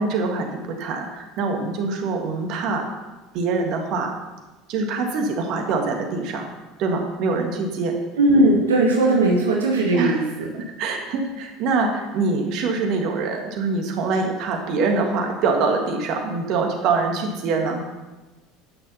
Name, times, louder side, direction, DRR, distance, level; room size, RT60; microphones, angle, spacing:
voice 1, 0.0-2.9 3.3-4.1 4.7-6.5 6.8-8.0 9.9-10.2 10.5-17.8, right 4 dB, 60° right, 2 dB, 1.7 m, -24 dB
voice 2, 8.2-10.2, right 2 dB, 85° right, -1 dB, 1.4 m, -18 dB
9.7 x 6.5 x 5.6 m, 1.2 s
hypercardioid pair, 75°, 0 cm